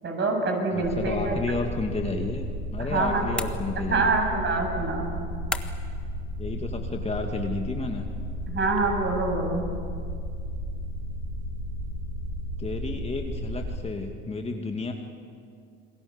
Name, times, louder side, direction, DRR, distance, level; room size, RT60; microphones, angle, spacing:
voice 1, 0.0-1.4 2.8-3.2 3.8-5.1 8.5-9.6, right 3 dB, 35° right, 2 dB, 7.8 m, -26 dB
voice 2, 0.7-4.1 6.4-8.1 12.6-14.9, left 3 dB, 20° left, 3 dB, 2.3 m, -31 dB
sound 1, 0.8-13.8, equal, 70° right, 7.8 m, -33 dB
sound 2, 3.4-4.1 5.5-6.0, left 1 dB, 5° left, 1.5 m, -34 dB
28.5 x 20.5 x 8.4 m, 2.3 s
hypercardioid pair, 85°, 32 cm